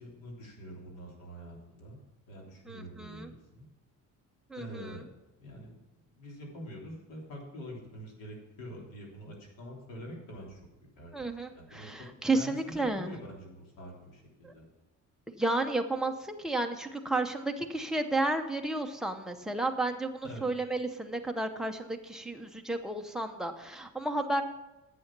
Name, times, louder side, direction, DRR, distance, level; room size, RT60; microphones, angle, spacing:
voice 1, 0.0-2.0 2.3-3.7 4.6-5.1 5.4-5.8 6.1-10.6 11.0-11.2 11.5-12.1 12.3-14.6 20.2-20.4, equal, 85° left, -1 dB, 3.3 m, -45 dB
voice 2, 2.7-3.3 4.5-5.0 11.1-13.2 14.4-14.5 15.3-24.4, right 2 dB, ahead, 3 dB, 0.7 m, -32 dB
11.0 x 7.7 x 5.9 m, 0.99 s
cardioid pair, 175°, 32 cm